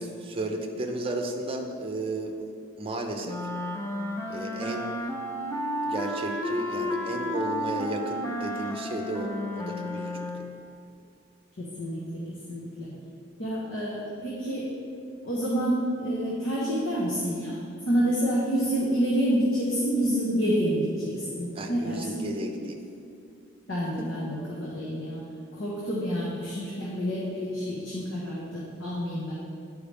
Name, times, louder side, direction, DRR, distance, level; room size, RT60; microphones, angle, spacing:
voice 1, 0.0-2.5 2.8-3.4 4.3-5.0 5.8-10.5 21.5-22.8 24.0-24.1, right 1 dB, 25° right, 3 dB, 0.6 m, -33 dB
sound 1, 3.2-10.6, equal, 15° left, 0.6 m, -32 dB
voice 2, 11.6-12.9 13.4-14.7 15.2-22.2 23.7-25.2 25.5-29.3, equal, 70° left, -6 dB, 1.1 m, -28 dB
9.8 x 4.8 x 3.4 m, 2.5 s
head